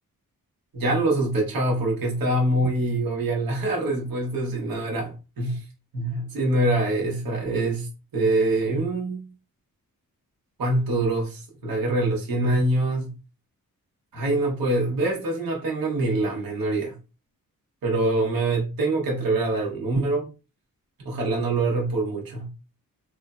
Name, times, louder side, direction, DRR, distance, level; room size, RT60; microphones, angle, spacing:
voice 1, 0.7-5.6 5.9-9.2 10.6-13.1 14.1-16.9 17.8-20.3 21.0-22.5, right 2 dB, 75° right, 0.9 m, -24 dB
3.1 x 2.0 x 2.3 m
wide cardioid pair, 110°, 34 cm